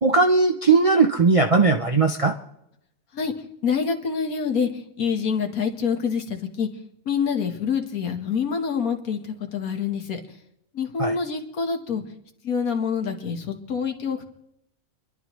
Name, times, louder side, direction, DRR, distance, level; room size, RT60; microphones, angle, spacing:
voice 1, 0.0-2.3 11.0-11.1, right 4 dB, 45° right, 3 dB, 0.4 m, -18 dB
voice 2, 3.6-4.7 5.0-6.7 7.1-9.2 9.5-10.2 10.7-12.0 12.4-14.2, left 6 dB, 75° left, 5 dB, 1.7 m, -26 dB
29.0 x 11.5 x 3.1 m, 0.80 s
omnidirectional pair, 1.5 m